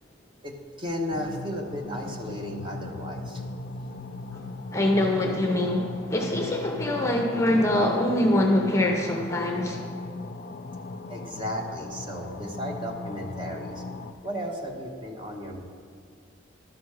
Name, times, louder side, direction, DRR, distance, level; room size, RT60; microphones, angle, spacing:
voice 1, 0.4-3.4 11.1-13.8 14.2-15.6, equal, 25° right, 1 dB, 1.0 m, -34 dB
sound 1, 1.1-14.1, left 2 dB, 50° left, 0.4 m, -38 dB
voice 2, 4.7-9.8, left 1 dB, 15° left, 2 dB, 0.6 m, -24 dB
11.5 x 6.0 x 4.7 m, 2.2 s
head